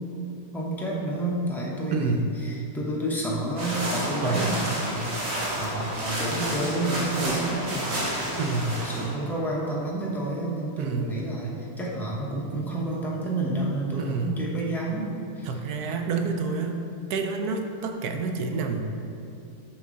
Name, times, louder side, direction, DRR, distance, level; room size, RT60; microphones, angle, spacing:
voice 1, 0.5-5.1 5.5-8.3 8.6-15.1 15.4-15.5, right 1 dB, ahead, -4 dB, 0.6 m, -30 dB
voice 2, 1.9-2.4 4.2-4.5 8.4-8.8 10.8-11.1 14.0-14.4 15.4-16.8 17.1-18.8, right 4 dB, 75° right, 5 dB, 1.1 m, -28 dB
sound 1, 3.6-9.1, right 1 dB, 45° right, 1.5 m, -30 dB
6.9 x 5.4 x 3.8 m, 2.6 s
omnidirectional pair, 1.7 m